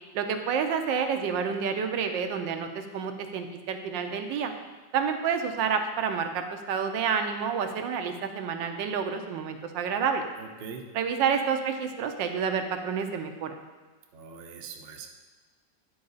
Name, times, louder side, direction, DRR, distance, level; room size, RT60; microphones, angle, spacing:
voice 1, 0.1-2.7 2.9-4.5 4.9-10.2 10.9-13.6, right 6 dB, 80° right, 6 dB, 1.3 m, -29 dB
voice 2, 10.4-10.9 14.1-15.1, right 5 dB, 60° right, 3 dB, 0.6 m, -42 dB
9.7 x 4.7 x 3.9 m, 1.4 s
omnidirectional pair, 2.0 m